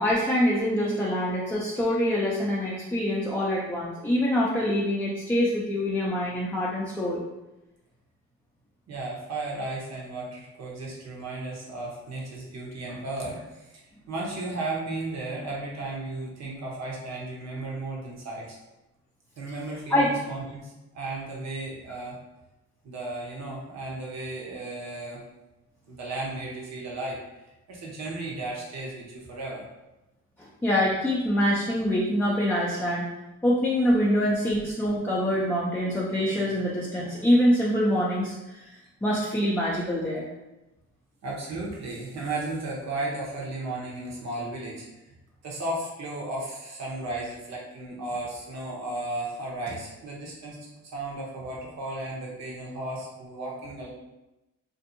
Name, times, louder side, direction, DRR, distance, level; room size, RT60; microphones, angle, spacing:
voice 1, 0.0-7.2 19.9-20.1 30.4-33.1 33.4-38.7 39.0-40.3, equal, 5° left, -6 dB, 0.4 m, -25 dB
voice 2, 8.9-13.8 14.1-18.6 19.4-22.2 22.8-25.2 25.9-27.2 27.4-29.7 41.2-45.1 45.4-50.6 50.9-53.9, right 2 dB, 60° right, -3 dB, 0.9 m, -34 dB
2.6 x 2.5 x 2.6 m, 0.99 s
cardioid pair, 90°, 30 cm